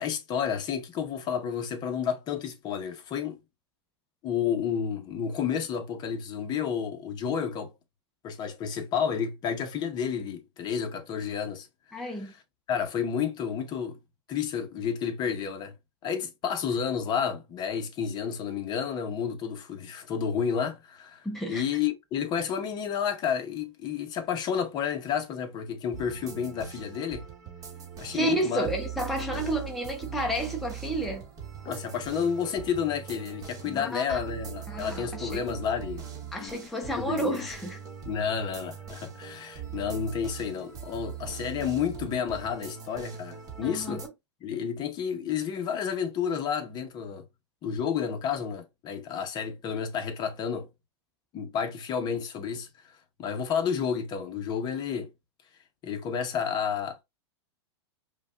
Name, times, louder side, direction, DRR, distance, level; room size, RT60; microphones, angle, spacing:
voice 1, 0.0-3.4 4.2-7.7 8.2-12.3 12.7-14.0 14.3-15.7 16.0-27.2 28.0-28.7 29.3-29.5 31.6-36.1 36.4-36.6 37.0-37.5 38.1-44.0 44.4-47.2 47.6-50.7 51.3-52.7 53.2-55.1 55.8-57.0, left 7 dB, 30° left, 0.8 m, -31 dB
voice 2, 11.9-12.3 21.2-21.6 28.1-31.3 33.7-34.4 34.7-35.4 36.3-37.8 43.6-44.0, right 1 dB, ahead, 0.5 m, -31 dB
sound 1, 25.9-44.1, right 9 dB, 25° right, 1.1 m, -41 dB
5.0 x 2.3 x 2.4 m
hypercardioid pair, 130°, 14 cm